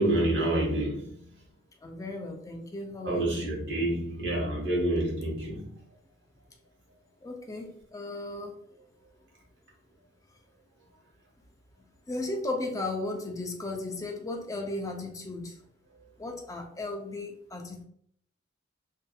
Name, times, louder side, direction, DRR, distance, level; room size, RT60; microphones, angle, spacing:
voice 1, 0.0-1.3 3.0-5.8, right 1 dB, 65° right, 0.9 m, -28 dB
voice 2, 1.8-3.6 7.2-8.5 12.1-15.5 16.2-17.8, left 2 dB, 15° left, 0.4 m, -35 dB
2.6 x 2.5 x 2.3 m
head